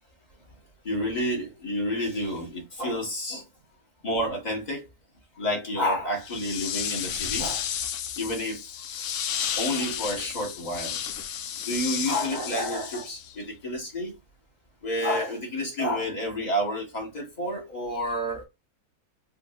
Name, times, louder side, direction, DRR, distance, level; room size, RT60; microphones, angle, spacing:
voice 1, 0.8-3.5 4.0-4.8 5.4-7.7 8.2-8.6 9.6-11.0 11.7-14.1 14.8-18.4, equal, 30° left, 1.5 m, -29 dB
sound 1, 6.2-13.4, left 9 dB, 70° left, 0.8 m, -32 dB
3.5 x 2.7 x 3.5 m
omnidirectional pair, 1.6 m